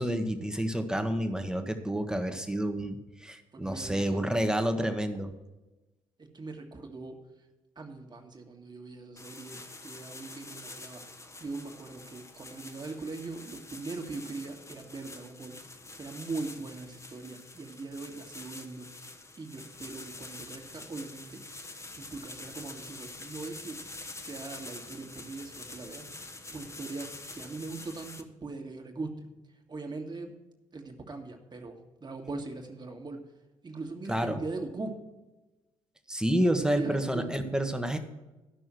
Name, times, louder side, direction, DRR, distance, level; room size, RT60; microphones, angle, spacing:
voice 1, 0.0-5.3 34.1-34.4 36.1-38.0, right 1 dB, 5° right, 7 dB, 1.2 m, -29 dB
voice 2, 3.5-4.2 6.2-7.2 7.8-15.6 16.0-23.8 24.2-26.1 26.5-30.3 30.7-33.2 33.6-35.0 36.5-37.3, right 3 dB, 25° right, 3 dB, 1.8 m, -41 dB
sound 1, 9.2-28.2, left 2 dB, 15° left, 1.0 m, -46 dB
13.0 x 6.1 x 6.2 m, 1.1 s
figure-of-eight pair, 45°, 17 cm